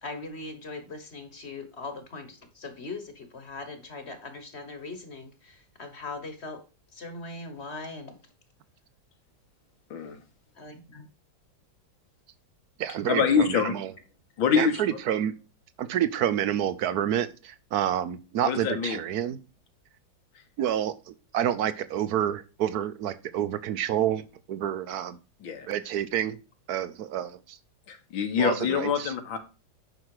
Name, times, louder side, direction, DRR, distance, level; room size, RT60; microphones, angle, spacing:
voice 1, 0.0-6.6 6.9-8.2 10.5-11.1, left 3 dB, 40° left, 8 dB, 1.4 m, -40 dB
voice 2, 9.9-10.2 13.1-13.8 14.4-14.9 18.4-19.0 25.4-25.7 27.9-29.4, left 7 dB, 85° left, 6 dB, 2.1 m, -25 dB
voice 3, 12.8-13.9 14.6-15.3 15.8-19.4 20.6-24.2 24.5-25.2 25.7-26.4 26.7-27.4 28.4-29.1, right 10 dB, 65° right, 14 dB, 1.0 m, -28 dB
9.6 x 5.8 x 4.7 m, 0.31 s
omnidirectional pair, 2.1 m